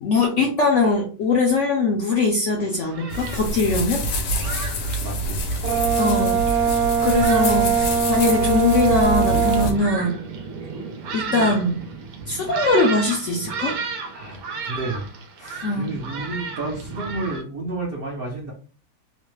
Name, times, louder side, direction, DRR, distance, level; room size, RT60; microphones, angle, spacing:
voice 1, 0.0-4.0 6.0-6.4 7.0-10.2 11.1-11.8 12.3-13.8 15.6-15.9, left 3 dB, 65° left, 0 dB, 0.7 m, -21 dB
Thunderstorm, 2.6-17.4, right 4 dB, 70° right, 1.1 m, -34 dB
sound 1, 3.1-9.7, equal, 85° left, 1.3 m, -26 dB
voice 2, 5.0-5.4 7.2-7.4 14.1-15.1 15.4-18.5, right 2 dB, 50° right, -3 dB, 0.7 m, -31 dB
Brass instrument, 5.6-9.7, right 7 dB, 85° right, 1.2 m, -21 dB
3.1 x 2.1 x 3.0 m, 0.39 s
omnidirectional pair, 1.7 m